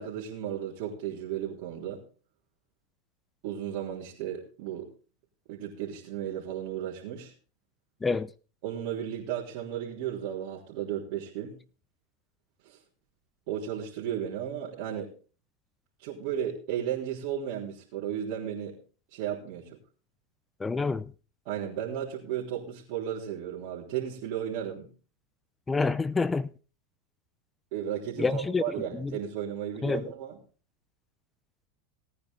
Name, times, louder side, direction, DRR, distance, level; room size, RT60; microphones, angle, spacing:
voice 1, 0.0-2.0 3.4-4.9 5.5-7.3 8.6-11.6 12.6-12.8 13.5-15.1 16.0-18.8 19.1-19.8 21.5-24.9 27.7-30.4, right 10 dB, 65° right, 3.6 m, -34 dB
voice 2, 20.6-21.1 25.7-26.5 28.2-28.6 29.0-29.1 29.8-30.0, left 4 dB, 15° left, 0.6 m, -27 dB
18.5 x 9.5 x 3.8 m
hypercardioid pair, 110°, 0 cm